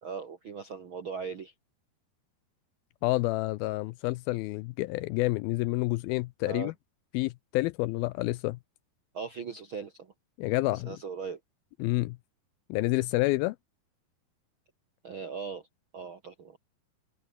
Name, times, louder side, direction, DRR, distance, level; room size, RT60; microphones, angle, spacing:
voice 1, 0.0-1.5 6.4-6.7 9.1-10.1 10.7-11.4 15.0-15.7 15.9-16.6, right 5 dB, 60° right, 1.3 m, -39 dB
voice 2, 3.0-6.7 7.1-8.6 10.4-11.0 11.8-12.2 12.7-13.6, left 20 dB, 80° left, 2.2 m, -29 dB
omnidirectional pair, 4.7 m